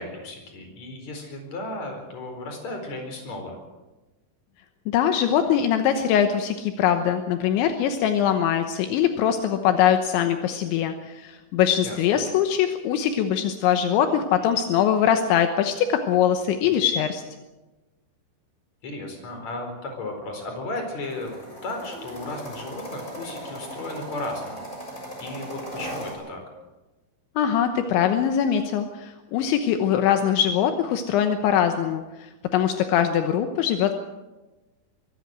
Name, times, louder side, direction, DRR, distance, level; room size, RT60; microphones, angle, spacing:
voice 1, 0.0-3.6 11.8-12.0 16.6-16.8 18.8-24.7 25.2-26.4, left 2 dB, 40° left, 4 dB, 5.4 m, -35 dB
voice 2, 4.9-17.2 27.4-33.9, left 9 dB, 80° left, 7 dB, 3.4 m, -22 dB
sound 1, 21.0-26.1, right 1 dB, 15° left, 6.9 m, -38 dB
23.0 x 16.5 x 7.6 m, 1.1 s
omnidirectional pair, 5.3 m